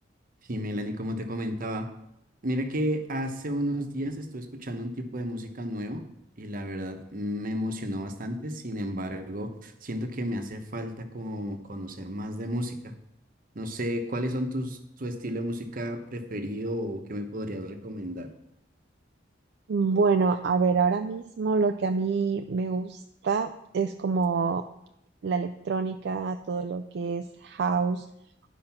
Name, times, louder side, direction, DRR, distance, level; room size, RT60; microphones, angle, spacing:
voice 1, 0.5-1.9 2.4-6.0 6.4-12.9 13.5-18.3, equal, 50° right, 6 dB, 1.0 m, -32 dB
voice 2, 19.7-24.6 25.2-28.1, right 4 dB, 65° right, 8 dB, 0.4 m, -26 dB
10.5 x 5.1 x 5.8 m, 0.81 s
head